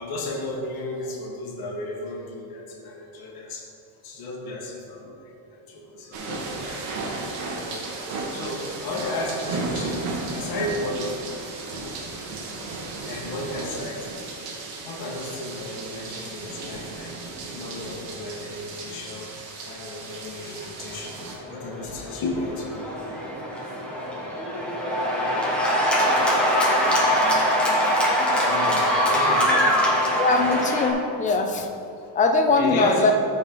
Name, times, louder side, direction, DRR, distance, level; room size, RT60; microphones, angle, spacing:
voice 1, 0.0-3.7 4.0-7.8 8.3-11.2 12.7-14.2 14.8-19.4 19.6-22.9 28.3-29.7 32.0-32.1 32.5-33.1, left 2 dB, 45° left, -2 dB, 1.6 m, -34 dB
sound 1, 6.1-21.4, right 3 dB, 90° right, 1.7 m, -34 dB
Cheering / Applause, 21.2-30.9, equal, ahead, 1.0 m, -23 dB
voice 2, 30.2-31.7 32.1-33.1, left 3 dB, 15° left, 4 dB, 0.4 m, -21 dB
13.5 x 4.9 x 3.8 m, 2.5 s
cardioid pair, 170°, 50 cm